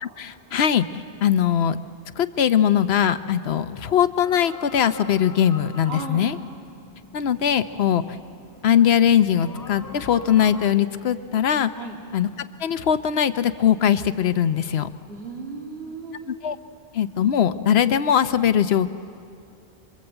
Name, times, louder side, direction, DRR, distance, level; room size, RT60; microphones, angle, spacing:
voice 1, 0.0-1.8 2.2-6.4 7.1-8.0 8.6-11.7 12.1-12.3 12.6-14.9 16.3-16.6 16.9-18.9, left 9 dB, 80° left, 12 dB, 1.0 m, -21 dB
sound 1, 4.2-10.7, left 3 dB, 20° left, 0.9 m, -43 dB
voice 2, 5.8-6.3 11.8-12.0 15.1-16.3, right 3 dB, 80° right, -2 dB, 3.4 m, -35 dB
27.0 x 22.5 x 8.0 m, 2.5 s
omnidirectional pair, 1.0 m